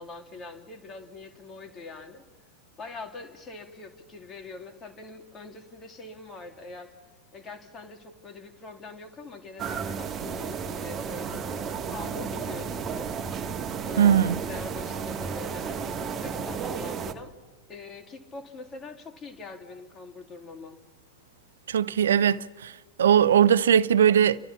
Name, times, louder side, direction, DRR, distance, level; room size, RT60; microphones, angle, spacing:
voice 1, 0.0-2.2 2.8-6.9 7.3-13.1 13.9-17.3 17.7-20.8, left 3 dB, 25° left, 2.6 m, -43 dB
sound 1, 9.6-17.1, right 6 dB, 25° right, 1.5 m, -33 dB
voice 2, 14.0-14.4 21.7-22.7 23.0-24.4, right 9 dB, 65° right, 0.6 m, -20 dB
30.0 x 13.5 x 7.2 m
figure-of-eight pair, 90°, 0 cm